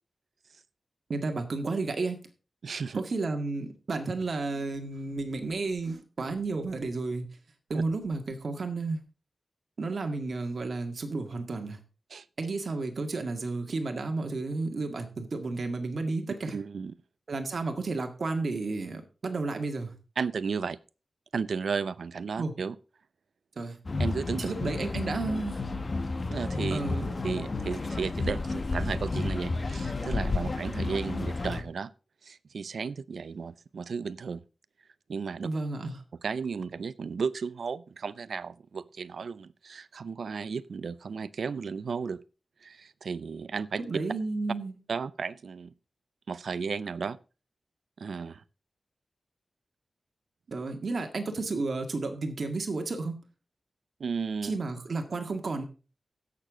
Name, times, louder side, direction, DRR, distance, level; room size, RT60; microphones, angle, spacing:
voice 1, 1.1-2.2 2.9-7.3 7.7-9.0 9.8-11.8 12.4-16.5 17.3-19.9 22.4-22.5 23.5-23.8 24.4-25.6 26.7-27.1 35.4-36.0 43.8-44.8 50.5-53.2 54.4-55.6, right 3 dB, 60° right, 1.8 m, -32 dB
voice 2, 2.6-3.0 7.7-7.8 12.1-12.2 16.5-16.9 20.2-20.8 21.3-22.8 24.0-24.5 26.3-26.8 27.2-31.9 32.2-34.4 35.1-35.5 36.2-42.2 42.6-43.8 44.9-45.7 46.3-47.2 48.0-48.4 54.0-54.6, right 5 dB, 85° right, 0.5 m, -34 dB
sound 1, 23.9-31.6, left 3 dB, 40° left, 1.0 m, -31 dB
16.5 x 6.6 x 3.7 m
wide cardioid pair, 115°, 0 cm